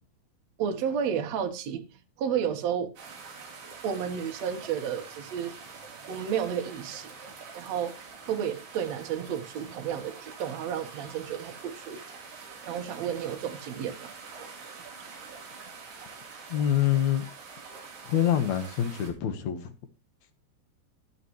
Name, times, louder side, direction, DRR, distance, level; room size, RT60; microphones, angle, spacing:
voice 1, 0.6-2.9 3.8-5.5 6.1-7.1 7.5-7.9 8.2-12.0 12.7-14.1, right 8 dB, 85° right, 1.5 m, -32 dB
sound 1, 3.0-19.1, right 5 dB, 55° right, 5.1 m, -46 dB
voice 2, 16.5-17.3 18.1-19.7, left 10 dB, 70° left, 1.7 m, -26 dB
14.5 x 11.5 x 3.1 m
omnidirectional pair, 5.1 m